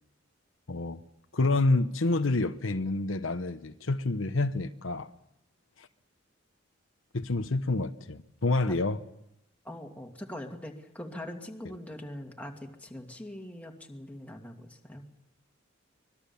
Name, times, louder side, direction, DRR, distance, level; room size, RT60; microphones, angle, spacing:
voice 1, 0.7-1.0 1.3-5.1 5.8-5.9 7.1-9.0, left 2 dB, 80° left, 1.0 m, -28 dB
voice 2, 9.6-15.1, left 1 dB, 5° left, 2.3 m, -42 dB
25.0 x 20.5 x 7.1 m
head